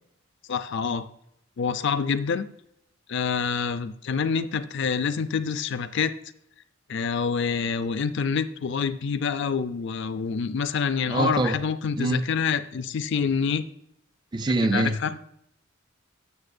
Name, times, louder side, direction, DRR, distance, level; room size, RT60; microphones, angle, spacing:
voice 1, 0.5-1.1 1.6-2.5 3.1-6.1 6.9-13.6 14.7-15.1, left 6 dB, 55° left, 0.4 m, -26 dB
voice 2, 11.1-11.6 12.0-12.3 14.3-15.0, right 2 dB, 20° right, 0.4 m, -24 dB
13.0 x 6.7 x 2.6 m
head